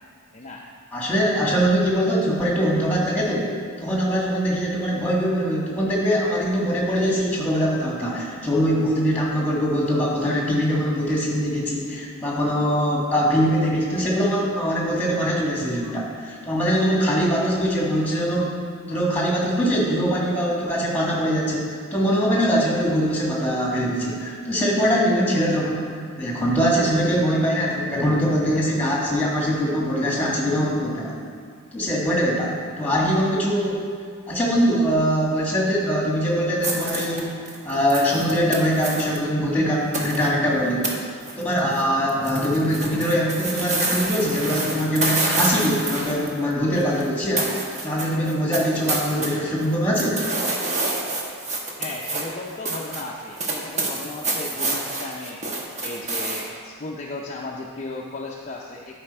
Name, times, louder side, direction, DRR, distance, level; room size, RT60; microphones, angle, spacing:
voice 1, 0.9-3.5 3.8-18.6 18.9-31.2 31.7-33.8 34.3-37.3 37.6-40.9 41.4-47.5 47.8-50.2, equal, 10° left, -4 dB, 1.7 m, -22 dB
sound 1, 36.6-39.2 39.9-40.3 40.8-40.9 41.2-41.8 42.1-47.1 47.4-49.3 49.6-56.5, right 2 dB, 35° right, 1.0 m, -28 dB
voice 2, 51.8-55.4 55.8-59.0, left 2 dB, 30° left, -2 dB, 0.5 m, -35 dB
11.0 x 4.9 x 4.3 m, 2.2 s
head